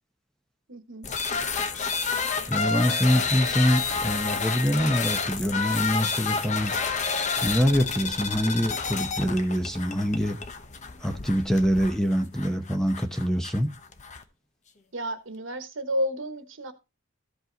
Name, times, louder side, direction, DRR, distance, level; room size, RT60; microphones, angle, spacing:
voice 1, 0.7-1.1 14.9-16.7, equal, 65° right, 1.2 m, -31 dB
sound 1, 1.0-14.2, left 5 dB, 35° left, 0.8 m, -30 dB
voice 2, 2.5-6.7 7.4-10.4 11.0-13.7, equal, 5° left, 0.8 m, -25 dB
13.5 x 5.4 x 3.9 m
head